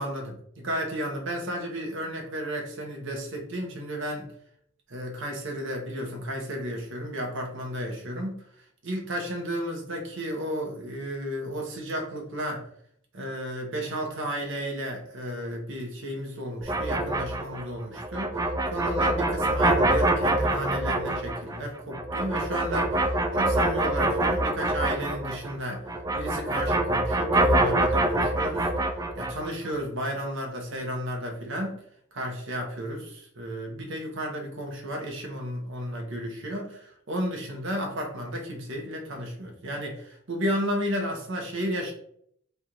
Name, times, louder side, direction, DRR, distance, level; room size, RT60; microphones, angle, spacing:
voice 1, 0.0-4.3 4.9-8.3 8.8-12.6 13.1-18.3 18.7-25.8 26.1-28.7 29.2-31.8 32.1-41.9, equal, 65° right, 1 dB, 1.0 m, -33 dB
sound 1, 16.6-25.6 25.8-29.5, right 1 dB, 15° right, 0.3 m, -25 dB
3.4 x 2.5 x 4.3 m, 0.66 s
head